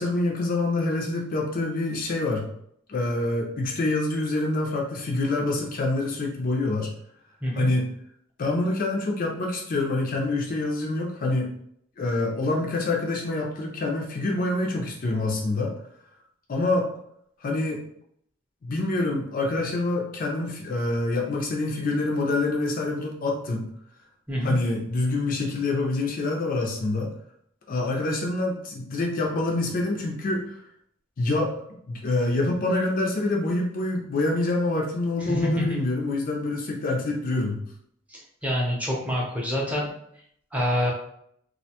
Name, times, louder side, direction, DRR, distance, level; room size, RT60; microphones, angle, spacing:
voice 1, 0.0-2.5 2.9-6.9 7.6-7.9 8.4-11.5 12.0-15.7 16.5-16.9 17.4-17.8 18.6-23.7 24.4-27.1 27.7-30.4 31.2-37.6, left 2 dB, 45° left, 0 dB, 0.4 m, -26 dB
voice 2, 35.2-35.8 38.1-39.9 40.5-40.9, equal, 5° right, -4 dB, 0.6 m, -27 dB
2.4 x 2.1 x 2.8 m, 0.69 s
head